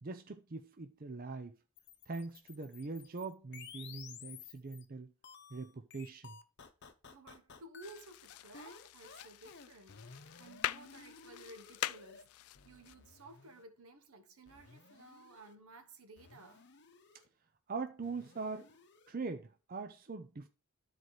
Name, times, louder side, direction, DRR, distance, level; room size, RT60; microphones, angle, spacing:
voice 1, 0.0-1.5 2.1-5.1 5.5-6.4 17.7-18.7 19.1-20.5, right 4 dB, 40° right, 0.6 m, -42 dB
sound 1, 1.8-4.8 5.2-12.2 12.5-13.6 14.5-15.5 16.2-17.3 18.0-19.1, left 6 dB, 50° left, 0.8 m, -55 dB
voice 2, 7.0-16.7, right 2 dB, 80° right, 1.1 m, -56 dB
sound 2, 7.8-12.9, left 13 dB, 85° left, 0.3 m, -44 dB
12.5 x 4.5 x 3.2 m
head